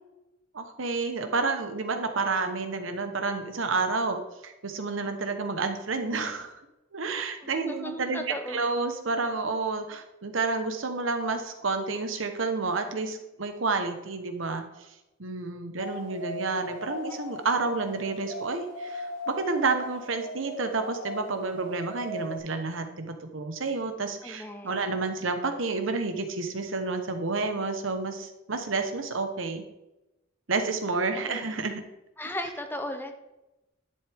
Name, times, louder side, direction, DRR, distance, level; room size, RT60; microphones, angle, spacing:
voice 1, 0.5-6.5 6.9-14.9 15.2-29.6 30.5-31.8, right 3 dB, 75° right, 7 dB, 1.1 m, -30 dB
voice 2, 7.4-8.6 17.1-17.2 24.2-24.9 31.1-31.4 32.2-33.1, left 1 dB, 10° left, 6 dB, 0.8 m, -36 dB
sound 1, 15.8-22.4, left 1 dB, 85° left, 3.4 m, -39 dB
11.0 x 7.8 x 3.5 m, 0.97 s
head